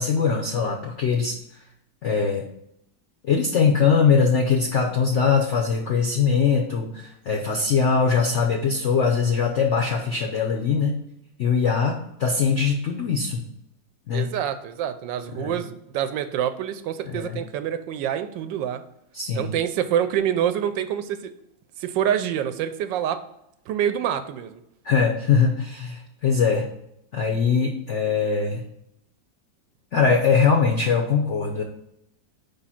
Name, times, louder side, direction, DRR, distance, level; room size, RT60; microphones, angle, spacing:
voice 1, 0.0-1.4 2.0-2.4 3.3-11.0 11.4-13.5 14.1-14.3 15.3-15.6 17.1-17.4 19.1-19.5 24.8-26.7 27.1-28.6 29.9-31.6, left 5 dB, 70° left, 2 dB, 0.6 m, -22 dB
voice 2, 14.1-18.8 19.3-21.3 21.8-23.2 23.7-24.6, right 10 dB, 75° right, 9 dB, 1.2 m, -26 dB
5.0 x 3.7 x 5.6 m, 0.78 s
omnidirectional pair, 2.1 m